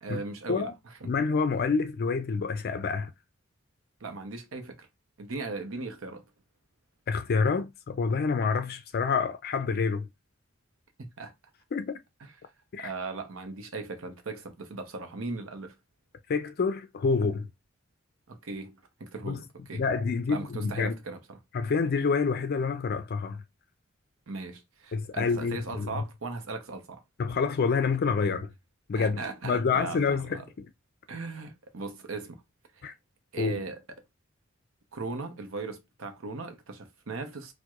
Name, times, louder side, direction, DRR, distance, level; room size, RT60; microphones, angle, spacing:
voice 1, 0.0-1.1 4.0-4.9 5.2-6.2 11.0-11.3 12.2-12.3 12.8-15.7 18.3-19.4 19.7-19.8 20.3-21.4 24.3-27.0 28.9-30.4 31.1-32.4 32.7-32.9 33.3-33.8 34.9-37.5, right 3 dB, 75° right, 0.7 m, -38 dB
voice 2, 1.0-3.1 7.1-10.1 11.7-12.0 12.7-12.9 16.3-17.5 19.2-19.4 19.7-20.9 21.5-23.4 24.9-26.0 27.2-28.5 28.9-30.7 32.8-32.9 33.4-33.6, left 5 dB, 50° left, 0.4 m, -28 dB
4.5 x 2.1 x 2.3 m
head